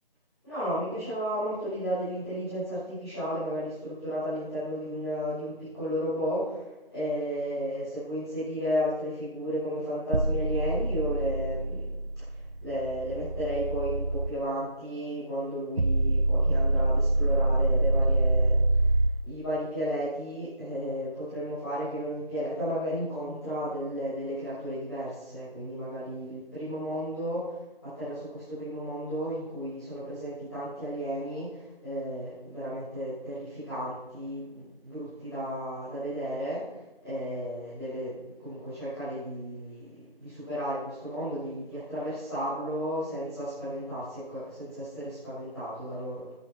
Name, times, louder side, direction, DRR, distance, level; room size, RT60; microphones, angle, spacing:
voice 1, 0.4-6.6 6.9-11.9 12.6-18.8 19.2-27.6 27.8-36.6 37.0-46.2, equal, ahead, -27 dB, 4.1 m, -33 dB
sound 1, 10.1-14.3 15.8-19.1, right 2 dB, 55° right, 0.9 m, -25 dB
15.5 x 8.4 x 4.5 m, 1.0 s
figure-of-eight pair, 175°, 30 cm